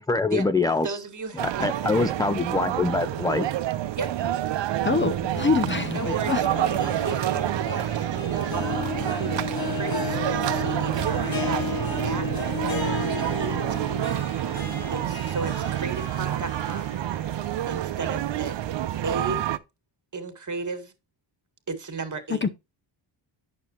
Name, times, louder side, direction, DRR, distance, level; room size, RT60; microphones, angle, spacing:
voice 1, 0.0-1.0 1.4-3.5, left 3 dB, 10° left, 0.3 m, -24 dB
voice 2, 0.8-1.7 4.0-4.1 5.9-11.8 12.0-12.3 12.9-13.8 14.9-17.0 17.7-18.6 19.0-19.5 20.1-20.9 21.7-22.5, right 4 dB, 40° right, 1.9 m, -35 dB
sound 1, 1.4-19.6, right 12 dB, 65° right, 0.7 m, -28 dB
voice 3, 4.8-6.4 22.4-22.5, left 4 dB, 25° left, 0.7 m, -24 dB
Harp, 5.5-17.6 18.0-18.1 18.9-19.0, left 5 dB, 45° left, 1.7 m, -34 dB
9.0 x 6.8 x 2.9 m
cardioid pair, 80°, 48 cm